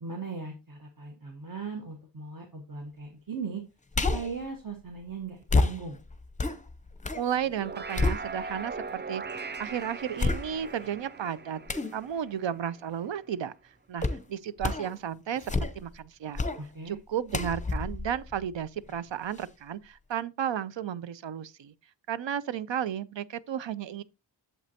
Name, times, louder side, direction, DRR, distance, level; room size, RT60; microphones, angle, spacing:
voice 1, 0.0-3.6 4.1-6.0 16.6-17.0, right 4 dB, 50° right, 1.3 m, -38 dB
sound 1, 3.9-4.4 5.5-7.3 7.6-8.7 9.3-9.4 10.2-10.9 11.7-12.0 14.0-14.3 14.6-15.0 15.3-16.0 16.4-16.6 17.3-19.0 19.4-19.5, left 3 dB, 15° left, 0.6 m, -29 dB
voice 2, 7.1-13.5 13.9-16.4 16.9-21.7 22.1-24.0, right 9 dB, 80° right, 0.6 m, -33 dB
sound 2, 7.4-13.0, right 4 dB, 25° right, 0.4 m, -40 dB
8.2 x 7.2 x 2.8 m
wide cardioid pair, 110°, 44 cm